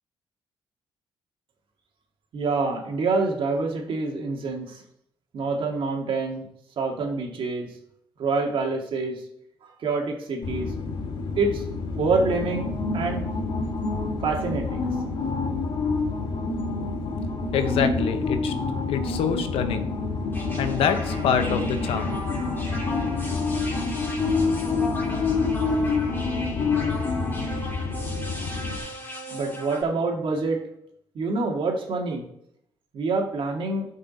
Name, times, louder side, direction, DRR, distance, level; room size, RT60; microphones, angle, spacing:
voice 1, 2.3-4.8 5.3-6.4 6.8-7.7 8.2-9.2 9.8-10.7 11.4-11.6 11.9-12.7 12.9-13.3 14.2-14.9 29.3-30.6 31.1-32.2 32.9-33.9, right 3 dB, 65° right, 1 dB, 2.3 m, -26 dB
sound 1, 10.4-28.8, left 4 dB, 60° left, 2.4 m, -27 dB
voice 2, 17.5-18.5 18.9-20.0 20.6-22.2, left 7 dB, 80° left, 8 dB, 1.1 m, -25 dB
sound 2, 20.3-29.8, left 1 dB, 20° left, 3.0 m, -37 dB
12.0 x 5.4 x 4.2 m, 0.74 s
cardioid pair, 75°, 10 cm